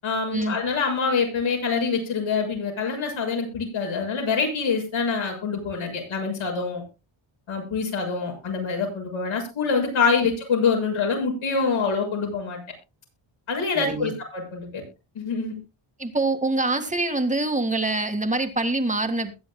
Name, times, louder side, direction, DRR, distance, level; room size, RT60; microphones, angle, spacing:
voice 1, 0.0-6.8 7.5-12.6 13.5-14.8 15.2-15.6, left 5 dB, 70° left, 2 dB, 6.9 m, -25 dB
voice 2, 13.8-14.1 16.0-19.3, right 2 dB, 15° right, 6 dB, 1.9 m, -25 dB
21.5 x 10.0 x 2.2 m, 0.28 s
cardioid pair, 125°, 50 cm